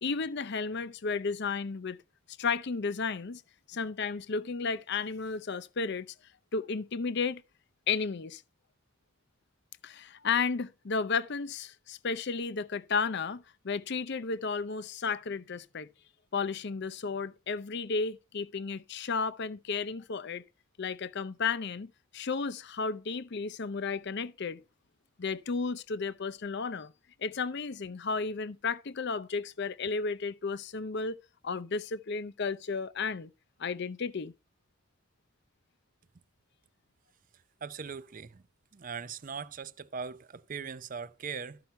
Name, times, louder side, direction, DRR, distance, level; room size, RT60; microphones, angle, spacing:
voice 1, 0.0-2.0 2.4-3.4 3.7-6.1 6.5-7.4 7.9-8.4 9.8-15.9 16.3-20.4 20.8-24.6 25.2-26.9 27.2-31.2 31.4-33.3 33.6-34.3, left 5 dB, 55° left, 0.6 m, -33 dB
voice 2, 37.6-38.4 38.7-41.6, right 6 dB, 40° right, 0.5 m, -40 dB
13.0 x 5.7 x 5.6 m
head